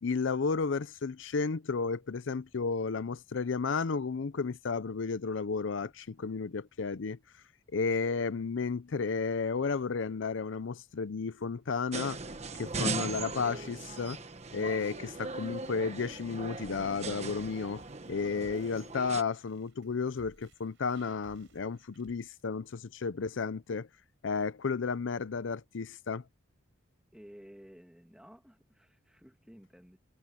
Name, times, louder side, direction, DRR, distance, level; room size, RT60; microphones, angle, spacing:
voice 1, 0.0-7.2 7.7-12.2 12.5-14.2 14.5-17.8 18.1-23.9 24.2-26.2, left 4 dB, 70° left, 0.5 m, -33 dB
sound 1, 11.9-19.2, right 3 dB, 35° right, 1.3 m, -39 dB
sound 2, 17.2-22.4, right 2 dB, 75° right, 4.3 m, -61 dB
voice 2, 27.1-30.0, equal, 5° right, 2.0 m, -54 dB
head